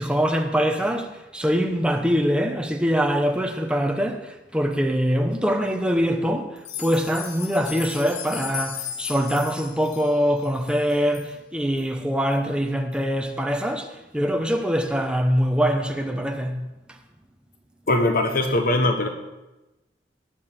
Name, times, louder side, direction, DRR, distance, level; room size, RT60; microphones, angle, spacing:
voice 1, 0.0-13.9 14.1-16.6, equal, 5° right, 1.0 m, -23 dB
sound 1, 6.6-11.3 11.8-11.9 12.3-12.4 12.9-13.0, left 9 dB, 85° left, 1.3 m, -36 dB
voice 2, 17.9-19.1, left 2 dB, 55° left, 1.0 m, -21 dB
19.0 x 7.2 x 4.5 m
head